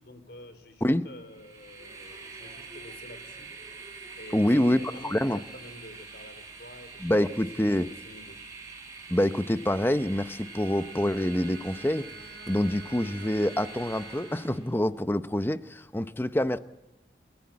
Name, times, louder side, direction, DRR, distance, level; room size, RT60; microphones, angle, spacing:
voice 1, 0.0-3.5 4.2-8.4, left 1 dB, 60° left, 11 dB, 3.5 m, -48 dB
Train, 1.2-14.7, right 4 dB, 20° right, 6.8 m, -45 dB
voice 2, 4.3-5.4 7.0-7.9 9.1-12.1 12.5-16.6, left 1 dB, 10° left, 12 dB, 0.7 m, -26 dB
Bowed string instrument, 10.3-14.8, right 1 dB, 70° right, 2.5 m, -50 dB
30.0 x 15.0 x 8.6 m, 1.0 s
head